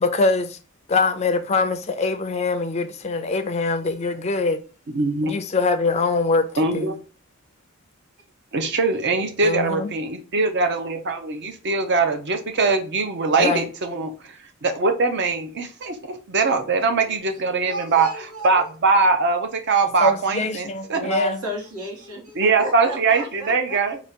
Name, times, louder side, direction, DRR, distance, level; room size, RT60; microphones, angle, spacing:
voice 1, 0.0-0.6 0.9-4.6 5.2-7.0 9.4-9.9 13.4-13.7 20.0-21.4, left 3 dB, 30° left, 0.4 m, -23 dB
voice 2, 4.9-5.3 6.6-6.9 8.5-14.1 14.6-18.1 18.4-21.0 22.4-24.0, right 4 dB, 50° right, 0.6 m, -22 dB
voice 3, 8.8-9.2 9.5-9.7 11.7-11.8 15.8-16.2 16.7-18.7 21.0-23.8, equal, 85° right, 1.2 m, -34 dB
4.0 x 2.3 x 3.6 m
head